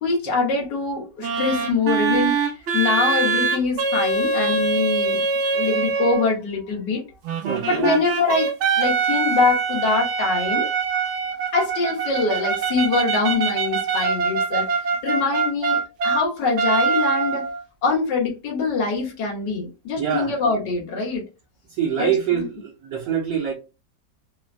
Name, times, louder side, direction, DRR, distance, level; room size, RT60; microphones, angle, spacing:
voice 1, 0.0-5.2 5.5-7.0 7.7-10.7 11.5-17.4 17.8-21.2 22.0-22.4, left 4 dB, 80° left, 1.7 m, -24 dB
sound 1, 1.2-6.3 7.2-16.2 16.6-17.6, right 5 dB, 85° right, 0.6 m, -23 dB
voice 2, 7.4-8.0 20.0-20.4 21.7-23.5, right 8 dB, 65° right, 1.1 m, -25 dB
3.8 x 2.1 x 2.4 m
omnidirectional pair, 1.8 m